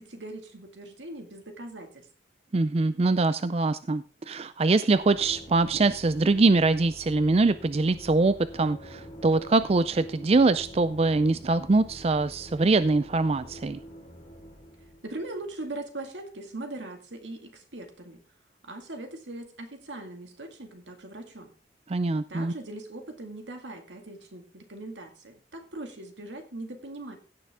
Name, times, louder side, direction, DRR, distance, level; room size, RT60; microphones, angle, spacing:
voice 1, 0.0-2.1 15.0-18.2 18.6-21.5 22.3-27.2, right 2 dB, 90° right, 5 dB, 2.1 m, -40 dB
voice 2, 2.5-13.8 21.9-22.5, right 3 dB, 35° right, 13 dB, 0.4 m, -23 dB
sound 1, 5.0-15.7, equal, 30° left, 4.3 m, -46 dB
16.0 x 6.8 x 3.6 m, 0.37 s
head